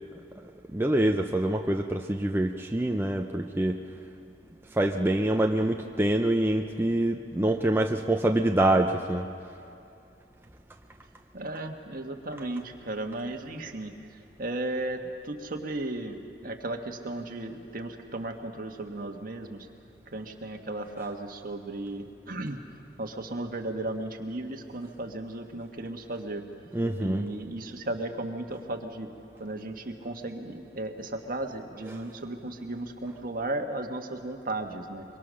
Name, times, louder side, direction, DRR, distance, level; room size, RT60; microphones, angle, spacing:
voice 1, 0.7-3.8 4.7-9.3 21.0-21.1 26.7-27.2 31.8-32.0, right 1 dB, 10° right, 3 dB, 0.6 m, -25 dB
voice 2, 11.3-13.9 14.4-19.7 20.1-22.6 23.0-26.4 27.0-29.1 29.4-35.0, right 2 dB, 50° right, 4 dB, 1.5 m, -35 dB
24.0 x 23.5 x 6.4 m, 2.6 s
head